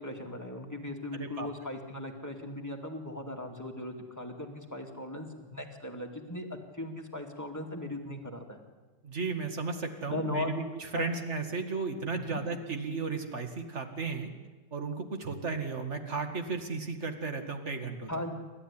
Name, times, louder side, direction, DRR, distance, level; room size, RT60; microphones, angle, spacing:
voice 1, 0.0-8.6 10.1-10.6 10.9-11.1 12.2-12.4 18.1-18.3, left 2 dB, 10° left, 2 dB, 2.3 m, -38 dB
voice 2, 1.1-1.5 9.0-14.3 14.7-18.2, right 4 dB, 40° right, 6 dB, 2.3 m, -34 dB
28.0 x 13.0 x 9.9 m, 1.3 s
omnidirectional pair, 1.9 m